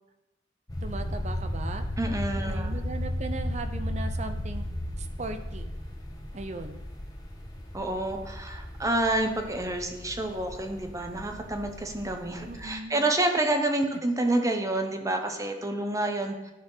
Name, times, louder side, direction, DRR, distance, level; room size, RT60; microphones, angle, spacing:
sound 1, 0.7-12.7, left 1 dB, 20° left, 1.4 m, -35 dB
voice 1, 0.8-1.8 2.4-4.6 5.0-5.7 6.3-6.8 12.4-13.1, right 3 dB, 40° right, 8 dB, 0.7 m, -38 dB
voice 2, 2.0-2.7 7.7-16.5, right 1 dB, 20° right, 4 dB, 1.0 m, -28 dB
12.5 x 4.4 x 5.6 m, 0.98 s
head